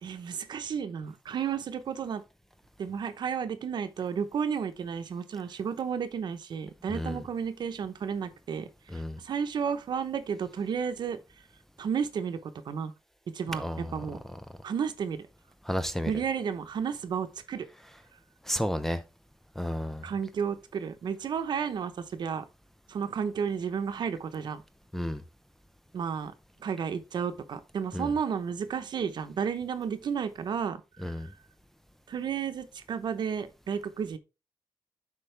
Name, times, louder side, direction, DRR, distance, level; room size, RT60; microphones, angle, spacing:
voice 1, 0.0-2.2 2.8-11.2 11.8-12.9 13.3-14.2 14.6-15.3 16.1-17.7 20.0-22.4 22.9-24.6 25.9-26.3 26.6-30.8 31.1-31.3 32.1-34.2, right 7 dB, 60° right, 0.8 m, -32 dB
voice 2, 6.9-7.2 8.9-9.2 13.5-14.1 15.7-16.1 18.4-19.0 19.6-20.1 24.9-25.2 27.9-28.1 31.0-31.3, equal, 5° left, 0.4 m, -32 dB
8.0 x 5.4 x 3.3 m
wide cardioid pair, 170°, 8 cm